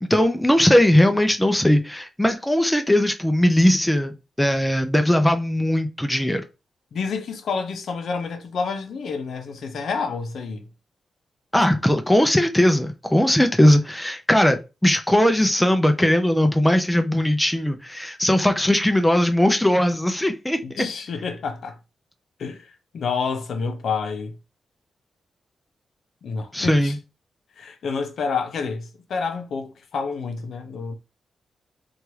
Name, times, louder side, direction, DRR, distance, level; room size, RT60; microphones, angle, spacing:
voice 1, 0.0-6.4 11.5-20.8 26.5-27.0, left 1 dB, 5° left, 0.3 m, -19 dB
voice 2, 6.9-10.6 20.6-21.8 22.4-22.7 22.9-24.3 26.2-27.0 27.6-30.9, left 5 dB, 75° left, 0.6 m, -29 dB
2.8 x 2.3 x 3.1 m
cardioid pair, 110°, 0 cm